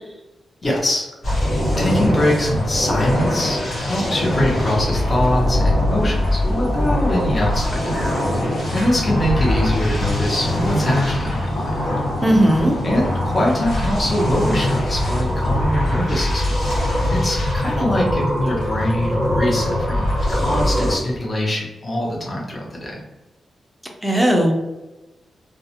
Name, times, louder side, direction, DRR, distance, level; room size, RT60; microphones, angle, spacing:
voice 1, 0.6-1.1 1.4-11.8 12.8-16.5 17.1-23.0, left 1 dB, 30° left, -3 dB, 0.7 m, -23 dB
sound 1, 1.2-21.0, left 1 dB, 65° left, 1.0 m, -22 dB
voice 2, 12.2-12.8 24.0-24.5, right 1 dB, ahead, 0 dB, 0.5 m, -16 dB
2.3 x 2.0 x 2.8 m, 1.1 s
cardioid pair, 85°, 0 cm